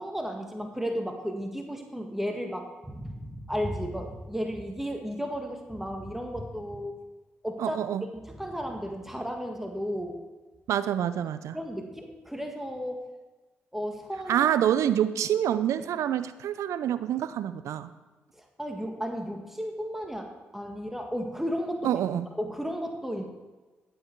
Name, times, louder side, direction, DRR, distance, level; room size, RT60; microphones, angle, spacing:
voice 1, 0.0-6.9 7.4-7.8 8.1-10.2 11.5-13.0 13.7-14.5 18.4-21.9 22.4-23.2, equal, 5° right, 3 dB, 1.8 m, -34 dB
voice 2, 7.6-8.0 10.7-11.6 14.3-17.9 21.8-22.3, right 10 dB, 70° right, 13 dB, 0.5 m, -27 dB
13.0 x 8.0 x 4.6 m, 1.2 s
hypercardioid pair, 40°, 5 cm